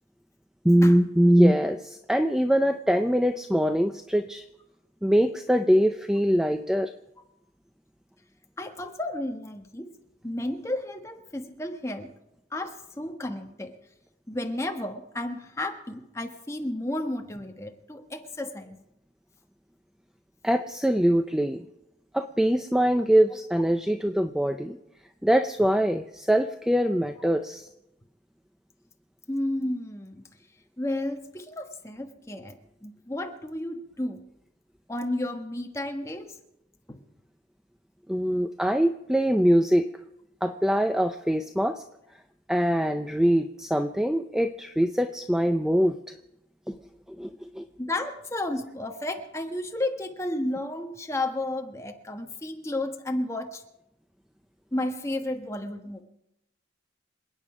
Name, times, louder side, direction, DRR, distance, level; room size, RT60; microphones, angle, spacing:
voice 1, 0.6-4.4 5.0-6.9 20.4-21.6 22.1-24.8 25.2-27.7 38.1-39.9 40.4-41.8 42.5-46.0 47.2-47.6, equal, 5° right, 7 dB, 0.5 m, -23 dB
voice 2, 8.6-9.9 10.2-12.1 12.5-13.8 14.3-18.8 29.3-30.3 30.8-32.6 32.8-34.2 34.9-36.3 36.9-37.0 47.8-53.6 54.7-56.0, left 1 dB, 15° left, 4 dB, 1.3 m, -32 dB
27.5 x 9.2 x 5.0 m, 0.88 s
head